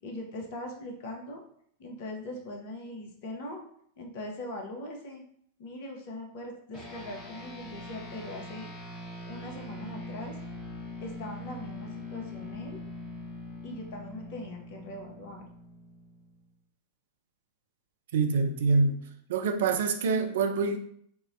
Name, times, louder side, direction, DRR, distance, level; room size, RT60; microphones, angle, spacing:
voice 1, 0.0-1.4 1.8-3.6 4.0-5.2 5.6-8.7 9.3-10.4 11.0-12.8 13.6-15.4, left 1 dB, 50° left, 2 dB, 0.6 m, -41 dB
sound 1, 6.7-16.4, left 1 dB, 20° left, 1.0 m, -42 dB
voice 2, 18.1-19.0 19.3-20.8, right 4 dB, 60° right, 6 dB, 0.3 m, -25 dB
3.7 x 2.0 x 2.5 m, 0.65 s
figure-of-eight pair, 90°, 0 cm